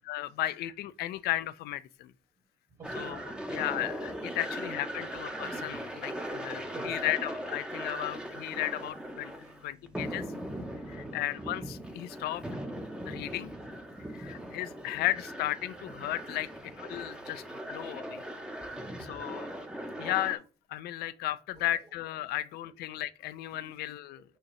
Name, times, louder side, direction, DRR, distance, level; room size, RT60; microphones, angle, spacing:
voice 1, 0.1-2.1 3.0-3.2 3.5-9.3 9.6-10.3 11.1-12.5 13.1-13.5 14.1-16.5 16.8-18.2 19.1-19.5 20.0-20.4 20.7-24.2, left 14 dB, 70° left, 0.4 m, -34 dB
sound 1, 2.8-20.4, equal, 5° right, 0.7 m, -39 dB
voice 2, 5.9-7.2 9.4-9.7 10.4-11.3 12.1-12.4 13.0-13.3 13.9-14.7 18.8-19.4 20.9-21.0 21.5-21.9 22.2-22.8 23.5-23.7 24.1-24.2, right 3 dB, 35° right, 1.7 m, -56 dB
6.3 x 2.8 x 3.0 m
cardioid pair, 110°, 17 cm